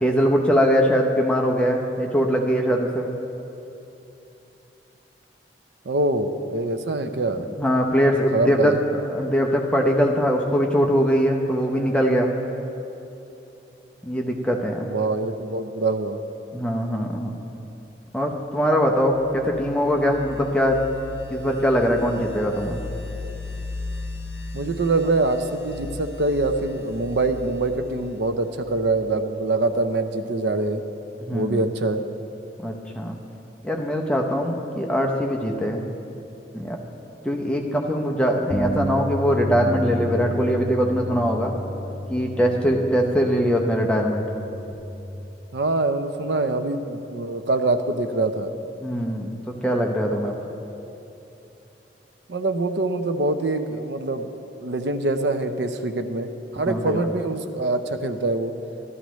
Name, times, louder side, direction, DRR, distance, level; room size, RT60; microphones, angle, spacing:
voice 1, 0.0-3.1 7.6-8.7 9.1-12.3 14.0-14.9 16.5-17.4 18.1-20.8 21.3-22.8 31.2-31.7 32.6-33.2 33.6-35.8 36.5-36.8 37.2-41.5 42.1-44.3 48.8-50.5 56.6-57.0, equal, 5° left, 0 dB, 0.6 m, -22 dB
voice 2, 5.9-7.5 8.3-8.8 14.9-16.2 24.5-30.8 31.3-32.0 45.5-48.5 52.3-54.3 54.6-58.5, right 2 dB, 75° right, 8 dB, 0.6 m, -24 dB
sound 1, 18.8-29.4, left 3 dB, 75° left, 0.9 m, -37 dB
Bass guitar, 38.5-44.7, equal, 50° left, 2.0 m, -31 dB
13.0 x 12.5 x 3.1 m, 2.9 s
head